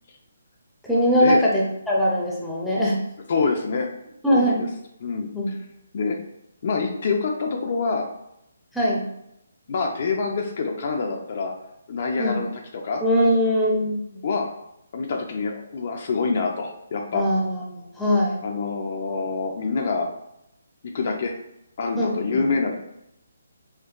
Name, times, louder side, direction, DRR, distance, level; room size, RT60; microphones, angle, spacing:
voice 1, 0.8-3.0 4.2-4.6 5.3-5.5 8.7-9.1 12.2-12.4 13.0-14.2 17.1-18.4 22.0-22.4, equal, ahead, -6 dB, 0.6 m, -21 dB
voice 2, 3.3-3.9 4.3-4.7 5.0-5.6 5.9-6.2 6.6-8.1 9.7-11.5 11.9-13.0 14.2-14.5 14.9-17.2 18.4-20.1 20.9-21.3 21.8-22.7, left 4 dB, 50° left, 2 dB, 0.4 m, -26 dB
4.4 x 2.2 x 2.4 m, 0.80 s
hypercardioid pair, 160°, 0 cm